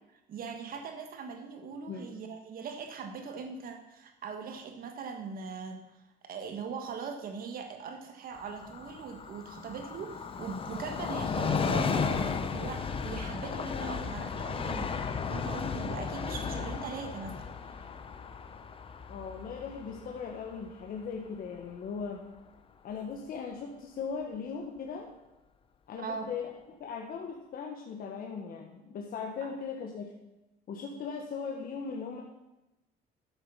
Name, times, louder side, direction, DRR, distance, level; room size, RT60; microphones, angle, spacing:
voice 1, 0.3-5.8 6.2-17.7 26.0-26.3 29.4-29.5, right 5 dB, 55° right, 5 dB, 1.5 m, -41 dB
Train, 8.3-21.7 22.0-22.1, left 5 dB, 30° left, 0.8 m, -35 dB
voice 2, 19.1-22.2 22.8-25.1 25.9-26.5 26.8-30.1 30.7-32.2, left 5 dB, 55° left, 1 dB, 1.5 m, -38 dB
12.0 x 8.1 x 5.7 m, 0.94 s
cardioid pair, 135°, 18 cm